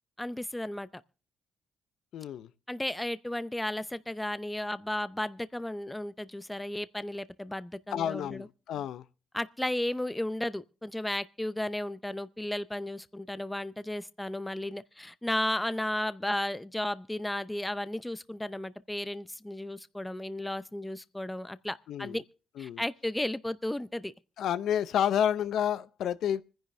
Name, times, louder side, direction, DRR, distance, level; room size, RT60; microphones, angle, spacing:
voice 1, 0.2-0.9 2.7-8.5 9.3-22.2 22.6-24.1, left 1 dB, 10° left, 0.6 m, -34 dB
voice 2, 2.1-2.5 7.9-9.0 21.9-22.2 22.6-22.8 24.4-26.4, left 9 dB, 75° left, 0.6 m, -30 dB
25.5 x 10.5 x 3.2 m
cardioid pair, 90°, 0 cm